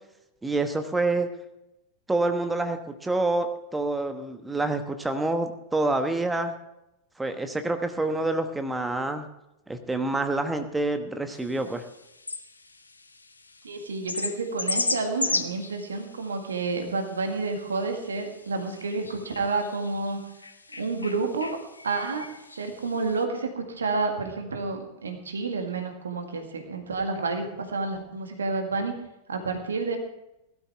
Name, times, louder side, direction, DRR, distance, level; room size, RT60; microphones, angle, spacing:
voice 1, 0.4-1.3 2.1-6.5 7.2-9.3 9.7-11.8, right 2 dB, 10° right, 7 dB, 1.2 m, -27 dB
sound 1, 11.3-23.2, left 3 dB, 80° left, 0.8 m, -36 dB
voice 2, 13.6-20.2 20.8-21.6 21.8-22.3 22.5-29.0 29.3-30.0, right 3 dB, 70° right, 5 dB, 1.9 m, -30 dB
17.5 x 12.5 x 3.5 m, 0.88 s
figure-of-eight pair, 90°, 0 cm